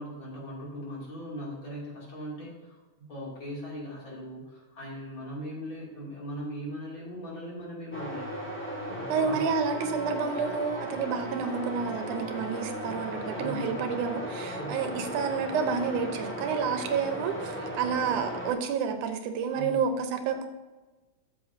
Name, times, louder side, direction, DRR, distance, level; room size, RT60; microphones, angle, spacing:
voice 1, 0.0-8.3 8.9-9.5 13.3-13.7 14.5-14.8 19.5-19.8, equal, 40° left, -5 dB, 3.1 m, -39 dB
sound 1, 7.9-18.5, equal, 5° left, 1.1 m, -36 dB
voice 2, 9.1-20.5, right 6 dB, 80° right, 6 dB, 2.2 m, -30 dB
13.0 x 7.4 x 2.7 m, 1.2 s
omnidirectional pair, 3.6 m